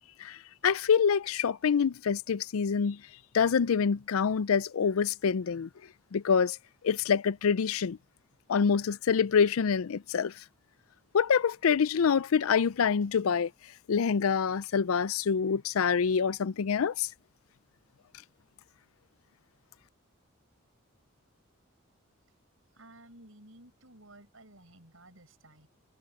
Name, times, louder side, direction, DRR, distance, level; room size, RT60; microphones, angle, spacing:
voice 1, 0.6-3.0 3.3-5.7 6.1-6.6 6.8-8.0 8.5-10.3 11.1-13.5 13.9-17.1, left 6 dB, 85° left, 0.5 m, -26 dB
voice 2, 22.7-25.7, right 1 dB, 70° right, 8.0 m, -54 dB
head